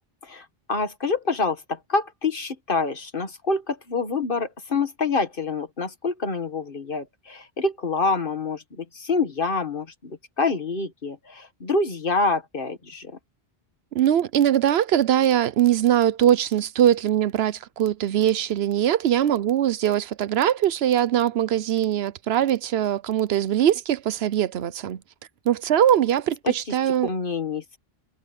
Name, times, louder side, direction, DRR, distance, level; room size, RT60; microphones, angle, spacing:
voice 1, 0.2-13.2 26.4-26.8 27.0-27.8, left 3 dB, 60° left, 1.9 m, -27 dB
voice 2, 13.9-25.0 25.5-27.1, right 11 dB, 80° right, 0.9 m, -21 dB
omnidirectional pair, 1.0 m